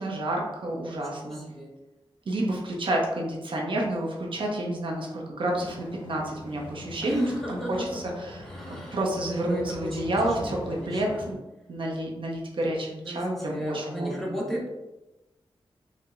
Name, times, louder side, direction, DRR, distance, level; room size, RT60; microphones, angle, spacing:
voice 1, 0.0-1.4 2.3-11.4 11.7-14.3, right 1 dB, 65° right, -2 dB, 0.7 m, -30 dB
voice 2, 1.1-1.7 7.0-8.0 8.4-9.0 9.3-11.2 13.1-14.7, right 1 dB, 5° left, -4 dB, 0.8 m, -35 dB
sound 1, 5.5-11.3, left 1 dB, 65° left, 1.1 m, -42 dB
4.4 x 2.1 x 2.4 m, 1.0 s
wide cardioid pair, 85°, 10 cm